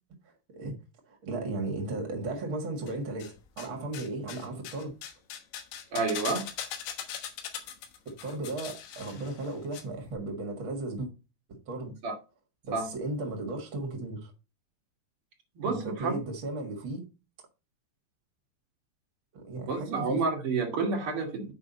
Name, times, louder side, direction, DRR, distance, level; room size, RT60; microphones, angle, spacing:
voice 1, 1.1-4.9 8.0-11.1 11.5-12.0 12.6-14.3 15.6-17.0 19.3-20.2, right 2 dB, 90° right, 1.1 m, -35 dB
sound 1, 2.9-3.7 3.9-9.8 10.1-10.2, left 9 dB, 80° left, 3.5 m, -40 dB
voice 2, 5.9-6.5 12.0-12.1 12.7-12.9 15.5-16.1 19.7-21.5, right 4 dB, 55° right, 1.6 m, -29 dB
8.5 x 4.9 x 4.0 m
omnidirectional pair, 5.2 m